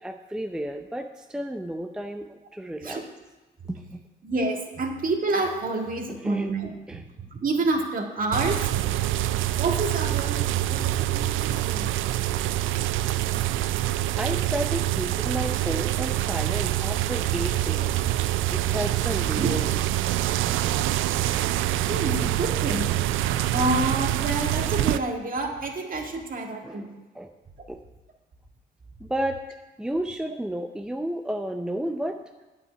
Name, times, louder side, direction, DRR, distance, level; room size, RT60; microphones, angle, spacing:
voice 1, 0.0-3.0 3.7-4.0 6.1-6.5 6.9-7.0 14.2-18.0 18.5-19.7 26.6-27.3 27.7-27.8 29.0-29.4 29.8-32.2, right 1 dB, 5° right, 4 dB, 0.5 m, -32 dB
voice 2, 4.2-7.0 7.3-8.7 9.6-12.1 19.4-19.5 21.9-22.9 23.5-26.9, right 2 dB, 45° right, 2 dB, 1.8 m, -28 dB
sound 1, 8.3-25.0, right 14 dB, 85° right, 0.4 m, -25 dB
9.1 x 5.8 x 8.3 m, 1.2 s
cardioid pair, 90°, 20 cm